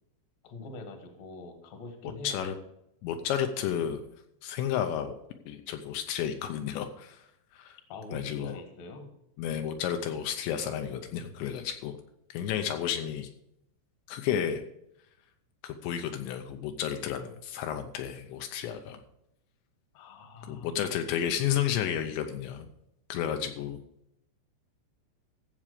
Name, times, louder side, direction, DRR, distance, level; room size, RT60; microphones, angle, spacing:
voice 1, 0.4-2.4 7.9-9.1 19.9-20.8, left 2 dB, 55° left, 5 dB, 2.0 m, -43 dB
voice 2, 2.0-2.6 3.0-4.0 4.4-5.1 5.5-7.2 7.5-7.8 8.1-8.6 9.4-12.0 12.3-13.3 14.1-14.6 15.6-19.0 20.4-22.7 23.1-23.8, left 9 dB, 80° left, 6 dB, 2.9 m, -32 dB
15.0 x 7.3 x 5.0 m, 0.80 s
omnidirectional pair, 5.4 m